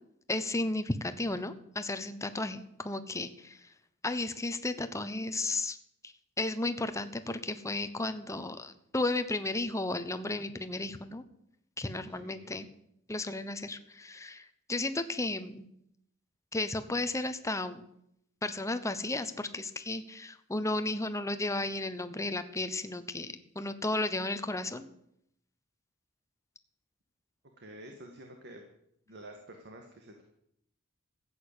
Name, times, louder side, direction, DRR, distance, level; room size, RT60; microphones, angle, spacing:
voice 1, 0.3-3.6 4.0-5.8 6.4-11.2 11.8-12.7 13.1-15.7 16.5-17.8 18.4-24.9, left 2 dB, 15° left, 10 dB, 1.0 m, -34 dB
voice 2, 12.1-12.6 27.6-28.6 29.1-30.2, right 1 dB, 55° right, 3 dB, 2.0 m, -49 dB
14.5 x 8.6 x 8.6 m, 0.75 s
head